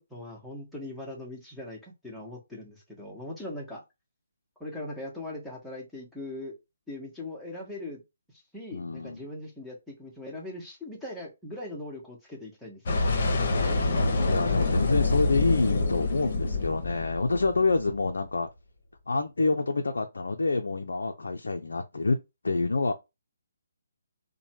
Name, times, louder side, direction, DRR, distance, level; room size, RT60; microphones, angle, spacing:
voice 1, 0.1-3.8 4.6-6.5 6.9-8.0 8.5-13.2, left 1 dB, ahead, 1.0 m, -40 dB
voice 2, 8.7-9.2 13.5-18.5 19.1-22.2 22.4-22.9, left 3 dB, 70° left, 0.4 m, -27 dB
sound 1, 12.9-18.0, left 3 dB, 45° left, 0.8 m, -26 dB
3.0 x 2.2 x 2.8 m
figure-of-eight pair, 140°, 0 cm